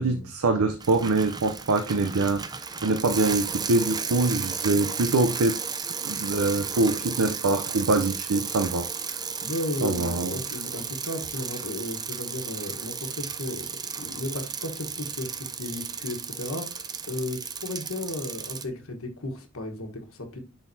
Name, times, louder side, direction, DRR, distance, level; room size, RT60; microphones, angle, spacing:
voice 1, 0.0-2.5 2.8-5.6 6.0-8.9 9.8-10.3, right 3 dB, 90° right, 0.6 m, -24 dB
Bicycle, 0.8-18.6, right 6 dB, 20° right, 0.5 m, -34 dB
voice 2, 9.4-20.4, left 1 dB, 75° left, 1.3 m, -35 dB
10.5 x 3.9 x 2.7 m
head